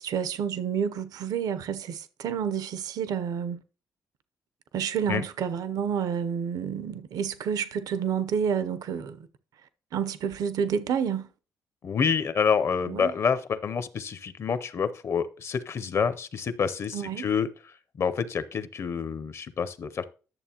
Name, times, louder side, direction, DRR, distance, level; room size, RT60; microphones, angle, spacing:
voice 1, 0.0-3.6 4.7-9.3 9.9-11.3 12.8-13.1 16.9-17.2, right 7 dB, 75° right, 0.6 m, -29 dB
voice 2, 11.8-20.1, left 6 dB, 45° left, 0.6 m, -28 dB
10.5 x 6.9 x 2.9 m
cardioid pair, 120°, 6 cm